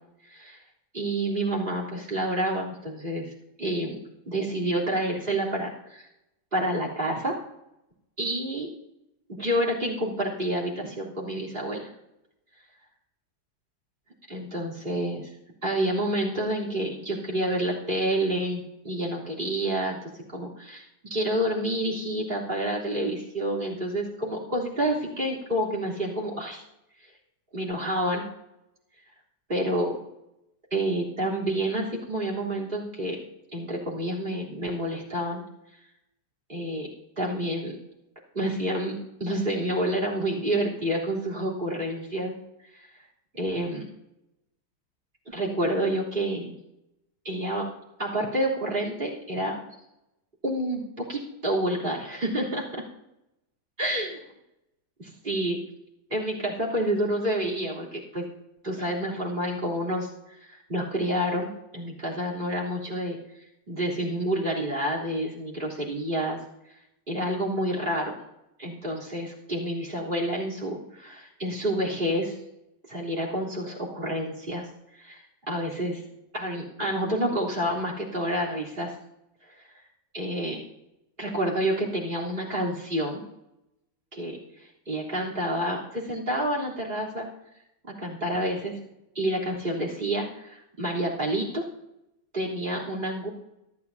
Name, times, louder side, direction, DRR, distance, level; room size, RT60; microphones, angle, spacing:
voice 1, 0.9-3.3 3.6-4.0 4.3-6.1 6.5-7.4 8.2-8.7 9.3-11.9 14.3-15.3 15.6-20.0 20.3-26.6 27.5-28.2 29.5-29.9 30.7-33.2 33.5-35.4 36.5-36.9 37.2-37.8 38.3-42.3 42.7-42.9 43.3-43.9 45.3-46.6 47.2-47.7 48.0-49.6 50.4-52.8 53.8-54.2 55.0-55.6 56.1-58.2 58.6-63.2 63.7-66.4 67.1-68.1 68.6-72.4 72.9-74.7 74.9-76.0 76.3-79.0 80.1-80.6 81.2-83.2 84.1-87.3 88.0-88.8 89.2-91.7 92.3-93.3, right 1 dB, 30° right, -1 dB, 3.7 m, -29 dB
25.5 x 11.0 x 2.8 m, 0.88 s
omnidirectional pair, 1.9 m